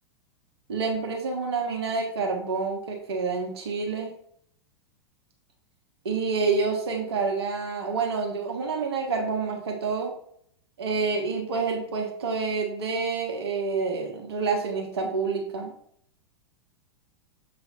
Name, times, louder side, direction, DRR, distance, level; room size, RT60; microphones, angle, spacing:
voice 1, 0.7-4.1 6.0-10.1 10.8-15.7, right 4 dB, 60° right, 1 dB, 1.3 m, -28 dB
6.9 x 3.2 x 4.3 m, 0.65 s
figure-of-eight pair, 95°, 15 cm